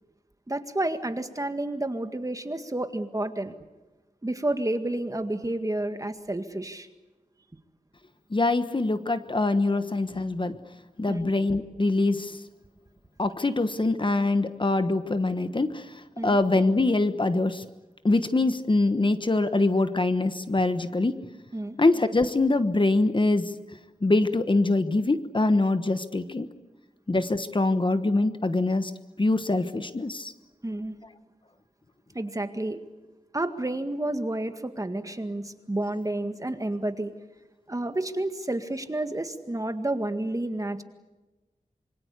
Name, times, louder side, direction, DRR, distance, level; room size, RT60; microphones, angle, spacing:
voice 1, 0.5-3.5 4.2-6.9 11.1-11.3 16.2-16.4 21.5-21.8 30.6-31.0 32.1-32.8 33.3-37.1 37.7-40.8, right 1 dB, 25° right, 8 dB, 1.9 m, -30 dB
voice 2, 8.3-10.6 11.0-12.3 13.2-15.8 16.2-17.6 18.0-21.2 21.8-23.5 24.0-26.5 27.1-28.9 29.2-30.3, left 2 dB, 35° left, 10 dB, 1.3 m, -24 dB
26.5 x 24.0 x 8.3 m, 1.1 s
wide cardioid pair, 90°, 14 cm